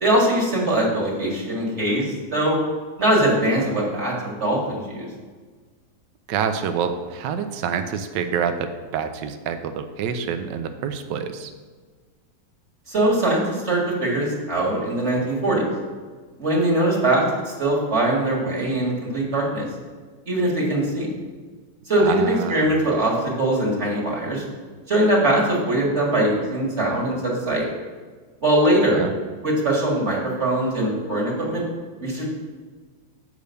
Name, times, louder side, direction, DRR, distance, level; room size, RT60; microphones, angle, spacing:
voice 1, 0.0-2.6 3.0-5.1 12.9-15.6 16.4-19.7 20.3-21.1 21.9-24.4 24.9-27.6 28.4-29.0 29.4-31.6 32.0-32.3, right 1 dB, 35° right, -3 dB, 2.1 m, -21 dB
voice 2, 6.3-11.5 22.0-22.7 28.9-29.1, right 7 dB, 70° right, 8 dB, 1.3 m, -27 dB
7.8 x 5.1 x 6.9 m, 1.4 s
omnidirectional pair, 2.1 m